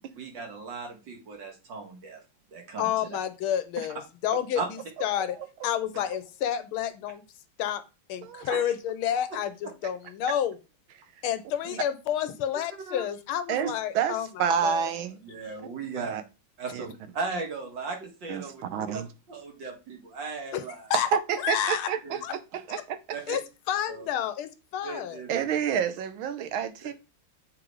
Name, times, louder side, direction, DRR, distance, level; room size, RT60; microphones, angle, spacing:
voice 1, 0.0-2.2 2.5-2.9 4.6-4.7 8.5-8.7 12.9-13.0 13.6-13.7 15.2-16.2 16.6-19.0 19.3-20.9 22.0-22.2 23.1-23.4 23.9-24.1 24.8-25.8, right 4 dB, 60° right, 2.4 m, -37 dB
voice 2, 2.8-5.4 5.6-7.2 7.6-7.8 8.1-10.6 11.2-14.9 20.5-20.6 20.9-21.1 21.4-21.9 22.2-22.3 22.7-22.8 23.3-23.4 23.7-25.2, left 10 dB, 85° left, 1.7 m, -30 dB
voice 3, 13.5-15.2 16.0-16.2 16.7-16.9 18.3-19.1 21.1-22.2 22.7-23.2 25.3-26.9, right 8 dB, 75° right, 1.5 m, -29 dB
7.8 x 3.9 x 4.7 m
omnidirectional pair, 2.3 m